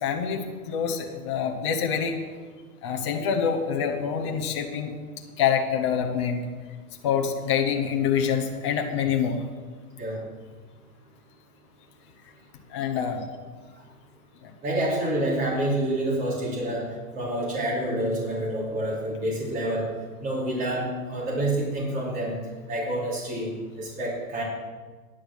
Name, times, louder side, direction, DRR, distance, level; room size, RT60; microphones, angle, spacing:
voice 1, 0.0-2.2 2.8-4.9 5.4-6.4 7.0-9.4 12.7-13.3 14.4-14.5, left 7 dB, 20° left, 2 dB, 0.6 m, -26 dB
voice 2, 14.6-16.8 17.1-19.9 20.2-22.3 22.7-24.4, right 1 dB, 20° right, -5 dB, 3.1 m, -28 dB
10.0 x 8.6 x 6.2 m, 1.4 s
hypercardioid pair, 165°, 44 cm